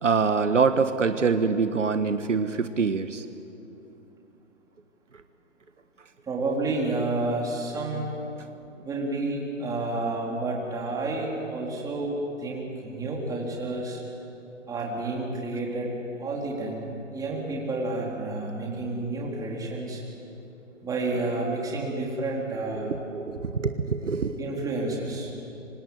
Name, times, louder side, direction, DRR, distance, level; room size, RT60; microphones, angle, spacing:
voice 1, 0.0-3.2 22.8-24.4, right 5 dB, 75° right, 10 dB, 1.4 m, -25 dB
voice 2, 6.3-8.1 8.8-14.0 14.7-15.9 16.2-16.9 17.1-20.0 20.8-23.0 24.4-25.3, right 2 dB, 10° right, -2 dB, 4.0 m, -30 dB
26.0 x 25.5 x 8.1 m, 2.9 s
figure-of-eight pair, 135°, 38 cm